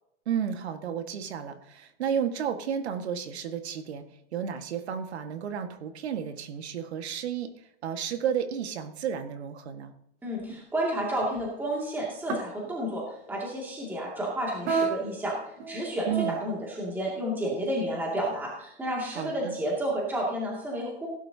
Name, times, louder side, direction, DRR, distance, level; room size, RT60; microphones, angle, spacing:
voice 1, 0.3-4.0 4.3-7.5 7.8-9.9 16.1-16.4 19.1-19.5, right 8 dB, 70° right, 7 dB, 1.8 m, -32 dB
voice 2, 10.2-13.0 13.3-21.1, right 1 dB, 5° right, -4 dB, 2.4 m, -31 dB
sound 1, 10.5-10.6 11.2-11.6 12.3-12.7 14.6-15.2 15.5-16.4, right 5 dB, 35° right, 3.5 m, -29 dB
17.0 x 12.0 x 2.9 m, 0.77 s
supercardioid pair, 160°, 33 cm